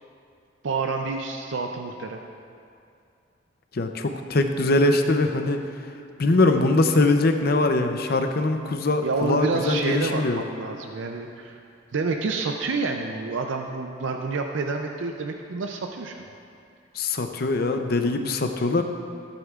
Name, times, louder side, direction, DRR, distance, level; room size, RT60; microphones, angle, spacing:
voice 1, 0.6-2.2 9.0-11.6 11.9-16.2, right 4 dB, 75° right, 3 dB, 0.5 m, -28 dB
voice 2, 3.7-5.6 6.2-10.4 17.0-18.8, left 2 dB, 50° left, 6 dB, 0.6 m, -22 dB
14.0 x 8.9 x 2.4 m, 2.5 s
head